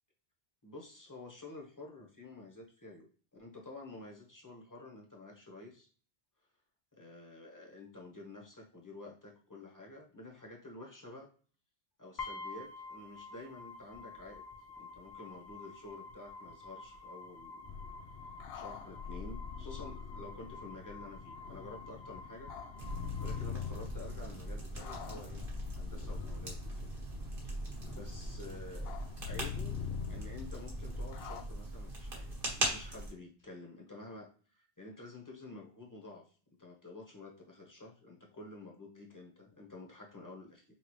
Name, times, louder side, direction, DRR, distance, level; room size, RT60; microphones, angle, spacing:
voice 1, 0.6-3.1 3.3-5.9 6.9-11.3 12.0-14.4 14.8-17.7 18.5-22.9 23.2-25.5 25.7-26.9 27.4-27.5 28.0-28.9 29.2-29.8 30.1-36.2 36.6-40.6, left 2 dB, 20° left, -1 dB, 1.1 m, -50 dB
sound 1, 12.2-24.2, left 3 dB, 45° left, 1.2 m, -49 dB
sound 2, 17.7-31.4, left 7 dB, 75° left, 0.8 m, -44 dB
sound 3, 22.8-33.1, right 1 dB, 60° right, 1.6 m, -40 dB
5.7 x 2.3 x 3.1 m, 0.42 s
omnidirectional pair, 1.1 m